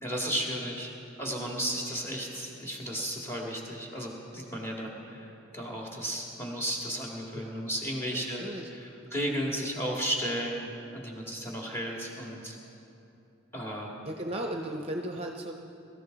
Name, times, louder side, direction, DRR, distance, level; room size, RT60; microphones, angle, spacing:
voice 1, 0.0-0.9 1.2-8.4 8.7-12.6 13.5-13.9, equal, 15° left, -2 dB, 2.2 m, -34 dB
voice 2, 8.1-8.7 14.0-15.5, right 1 dB, 30° right, 2 dB, 0.7 m, -36 dB
22.5 x 14.0 x 4.0 m, 2.8 s
head